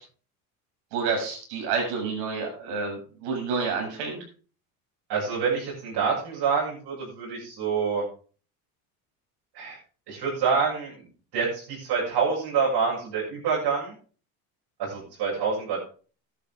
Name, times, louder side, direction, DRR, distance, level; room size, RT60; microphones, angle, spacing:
voice 1, 0.9-4.2, right 5 dB, 80° right, 1 dB, 7.4 m, -29 dB
voice 2, 5.1-8.0 9.5-9.8 10.1-11.1 11.3-13.9 14.8-15.8, right 5 dB, 60° right, -5 dB, 7.7 m, -27 dB
12.5 x 11.5 x 3.8 m, 0.40 s
supercardioid pair, 85°, 45 cm